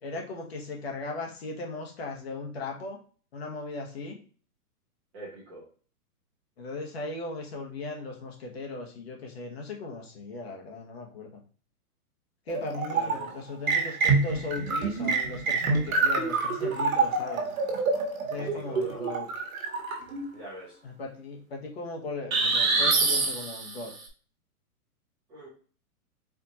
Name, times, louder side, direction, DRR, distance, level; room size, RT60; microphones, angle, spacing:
voice 1, 0.0-3.0 3.3-4.2 6.6-11.4 12.5-17.5 18.2-19.3 20.8-23.9, left 2 dB, 45° left, 1 dB, 1.0 m, -37 dB
voice 2, 5.1-5.6 12.9-13.3 18.3-19.0 20.3-20.8 25.3-25.5, right 1 dB, 10° right, -7 dB, 0.9 m, -42 dB
sound 1, 12.5-13.3 13.7-20.3 22.3-23.9, right 4 dB, 65° right, 1.3 m, -26 dB
4.4 x 2.8 x 2.8 m, 0.41 s
hypercardioid pair, 175°, 45 cm